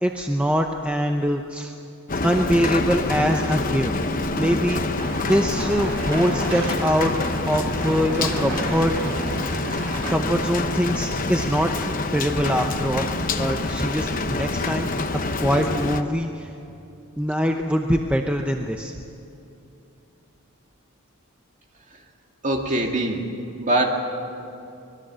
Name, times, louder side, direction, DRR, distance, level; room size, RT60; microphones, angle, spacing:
voice 1, 0.0-1.7 2.2-3.9 4.3-7.1 7.5-8.9 9.7-9.8 10.1-13.1 13.4-14.9 15.4-16.5 17.2-18.9 22.7-22.8, equal, 5° right, 3 dB, 0.7 m, -23 dB
Rain, 2.1-16.0, left 2 dB, 40° left, 1.0 m, -26 dB
sound 1, 5.0-10.2, right 2 dB, 80° right, 2.8 m, -33 dB
voice 2, 22.4-23.3 23.6-23.9, right 1 dB, 35° right, 2 dB, 2.2 m, -22 dB
24.5 x 20.5 x 7.6 m, 2.7 s
head